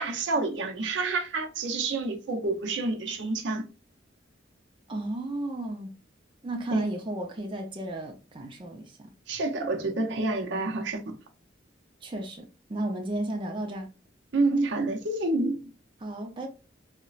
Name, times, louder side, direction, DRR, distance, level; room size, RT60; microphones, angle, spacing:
voice 1, 0.0-3.6 6.7-6.8 9.3-11.2 14.3-15.7, right 3 dB, 70° right, 0.6 m, -28 dB
voice 2, 4.9-5.9 6.4-9.0 12.0-13.9 16.0-16.5, right 1 dB, 25° right, 0.5 m, -33 dB
3.9 x 2.1 x 2.3 m
head